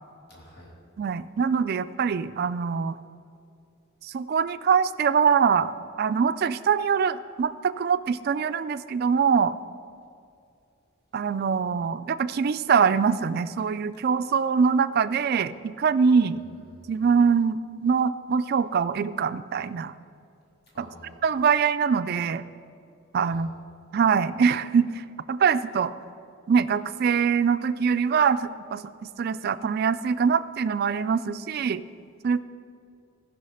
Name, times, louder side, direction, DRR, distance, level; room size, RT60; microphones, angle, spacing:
voice 1, 0.3-0.7 16.3-17.0 20.7-21.2 23.2-23.4, equal, 55° left, -3 dB, 2.5 m, -50 dB
voice 2, 1.0-3.0 4.0-5.7 6.0-9.5 11.1-16.4 16.9-19.9 20.8-20.9 21.2-22.4 23.1-23.5 23.9-25.9 26.5-28.9 29.2-31.8 32.2-32.4, right 6 dB, 50° right, 14 dB, 0.3 m, -23 dB
15.0 x 5.7 x 5.6 m, 2.4 s
head